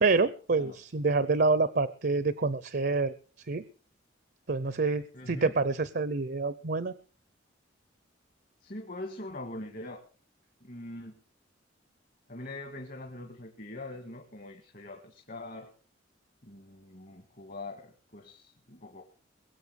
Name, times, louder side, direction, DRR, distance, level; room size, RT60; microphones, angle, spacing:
voice 1, 0.0-3.1 3.5-3.6 4.5-6.9, right 3 dB, 55° right, 15 dB, 0.7 m, -27 dB
voice 2, 5.1-5.5 8.6-10.0 10.6-11.2 12.3-15.7 16.4-19.0, left 2 dB, 45° left, 3 dB, 1.9 m, -43 dB
21.5 x 7.8 x 6.5 m, 0.43 s
head